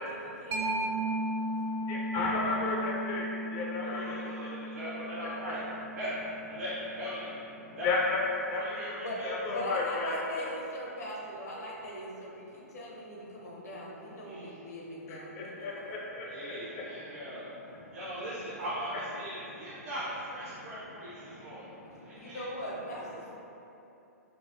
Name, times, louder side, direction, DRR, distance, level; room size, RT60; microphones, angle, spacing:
voice 1, 0.0-0.7 9.0-9.2 9.5-15.8 22.1-23.3, equal, 75° left, -3 dB, 0.8 m, -40 dB
Mallet percussion, 0.5-7.8, right 1 dB, 25° right, 0.4 m, -36 dB
voice 2, 0.8-4.4 5.4-5.5 7.7-8.2 8.5-8.6 9.2-10.5 15.1-16.5 21.2-22.3, left 3 dB, 35° left, -3 dB, 0.5 m, -34 dB
voice 3, 3.8-5.6 5.9-6.1 6.5-7.3 7.7-7.9 8.6-9.3 14.2-14.5 16.2-17.5 17.9-21.7 22.1-22.5, equal, 60° right, -10 dB, 0.8 m, -39 dB
4.0 x 2.6 x 2.6 m, 2.9 s
hypercardioid pair, 120°, 9 cm